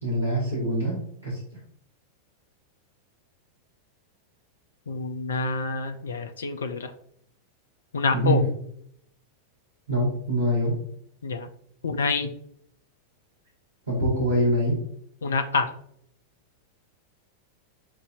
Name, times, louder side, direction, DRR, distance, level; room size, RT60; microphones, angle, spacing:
voice 1, 0.0-1.4 8.1-8.5 9.9-10.8 13.9-14.8, equal, 85° right, -8 dB, 1.6 m, -24 dB
voice 2, 4.9-6.9 7.9-8.4 11.2-11.5 11.8-12.3 15.2-15.7, left 4 dB, 70° left, 9 dB, 0.4 m, -27 dB
7.2 x 2.6 x 2.4 m, 0.68 s
figure-of-eight pair, 90°, 0 cm